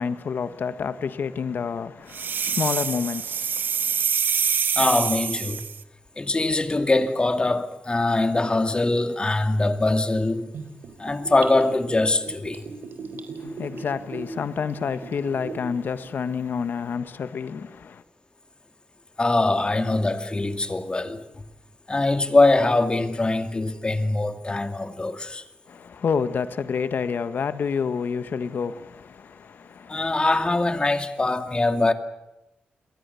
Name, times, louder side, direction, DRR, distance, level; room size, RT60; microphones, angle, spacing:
voice 1, 0.0-4.0 13.4-18.0 25.7-30.1, left 6 dB, 70° left, 1.5 m, -29 dB
sound 1, 2.1-5.8, right 7 dB, 70° right, 0.9 m, -25 dB
voice 2, 4.8-5.6 6.2-10.5 11.0-12.7 19.2-21.5 21.9-25.4 29.9-31.9, left 2 dB, 30° left, 2.5 m, -23 dB
Gurgling / Bathtub (filling or washing), 10.5-15.7 16.0-16.1, right 4 dB, 85° right, 3.7 m, -38 dB
30.0 x 23.0 x 7.1 m
cardioid pair, 75°, 3 cm